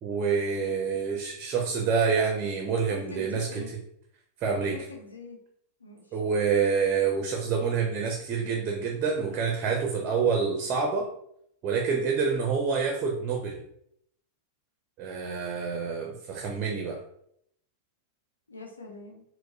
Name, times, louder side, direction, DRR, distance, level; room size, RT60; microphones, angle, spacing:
voice 1, 0.0-3.8 4.4-4.9 6.1-11.1 11.6-13.6 15.0-17.0, right 5 dB, 35° right, 2 dB, 0.5 m, -27 dB
voice 2, 2.9-3.7 4.7-5.4 5.8-6.0 18.5-19.2, left 3 dB, 80° left, 2 dB, 0.6 m, -43 dB
4.5 x 2.0 x 2.6 m, 0.72 s
figure-of-eight pair, 90°, 0 cm